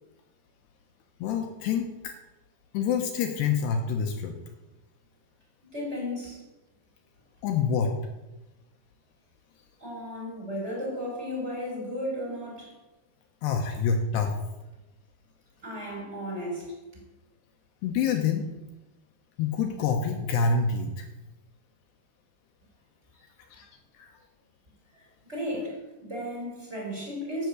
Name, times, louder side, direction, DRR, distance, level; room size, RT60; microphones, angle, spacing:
voice 1, 1.2-2.1 2.7-4.3 7.4-7.9 13.4-14.3 17.8-18.5 19.4-21.1 23.5-23.7 24.0-24.1, left 5 dB, 75° left, 4 dB, 3.1 m, -27 dB
voice 2, 5.7-6.4 9.8-12.7 15.6-17.0 24.9-25.0 25.3-27.5, equal, 15° right, -3 dB, 5.6 m, -34 dB
11.5 x 8.4 x 8.1 m, 1.0 s
omnidirectional pair, 5.1 m